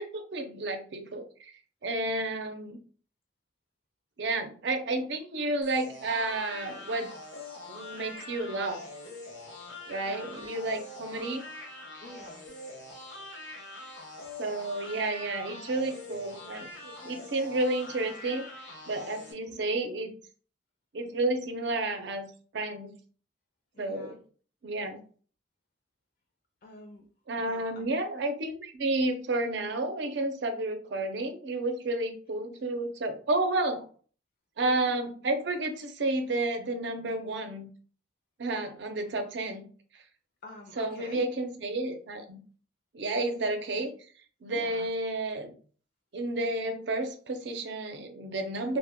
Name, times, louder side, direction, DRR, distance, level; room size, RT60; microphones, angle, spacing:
voice 1, 0.0-1.5 1.8-2.8 4.2-7.1 7.7-8.8 9.9-11.4 14.4-18.5 18.9-20.1 20.9-23.0 23.8-24.2 24.6-25.0 27.3-33.8 34.6-37.7 38.4-39.7 40.8-42.4 42.9-43.9 44.4-45.5 46.1-48.8, right 2 dB, 65° right, 6 dB, 0.5 m, -31 dB
sound 1, 5.6-19.3, left 2 dB, 80° left, 0.9 m, -44 dB
voice 2, 10.0-10.5 11.0-11.3 12.0-12.4 19.4-19.6 23.7-24.2 26.6-27.0 27.4-27.9 40.4-41.2 44.5-44.9, left 1 dB, 50° left, 1 dB, 0.5 m, -47 dB
2.2 x 2.1 x 3.4 m, 0.43 s
head